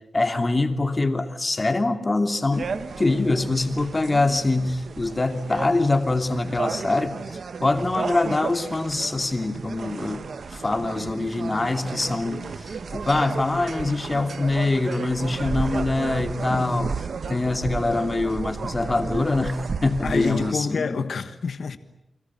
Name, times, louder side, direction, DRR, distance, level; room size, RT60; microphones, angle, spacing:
voice 1, 0.1-2.7 3.0-7.2 7.6-10.2 10.5-16.9 17.3-21.0, left 2 dB, 25° left, 2.8 m, -24 dB
sound 1, 2.5-20.5, right 5 dB, 70° right, 1.3 m, -33 dB
voice 2, 20.0-21.8, left 5 dB, 70° left, 1.4 m, -27 dB
29.5 x 22.5 x 8.9 m
wide cardioid pair, 105°, 0 cm